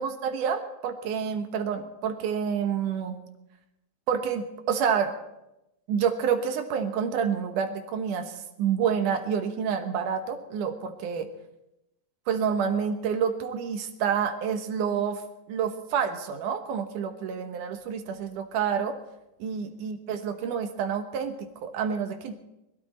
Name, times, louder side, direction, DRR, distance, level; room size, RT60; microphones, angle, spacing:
voice 1, 0.0-3.2 4.1-5.1 5.9-11.3 12.3-15.2 15.5-19.0 19.4-22.3, right 7 dB, 90° right, 7 dB, 2.7 m, -28 dB
23.0 x 12.5 x 4.3 m, 0.91 s
omnidirectional pair, 3.5 m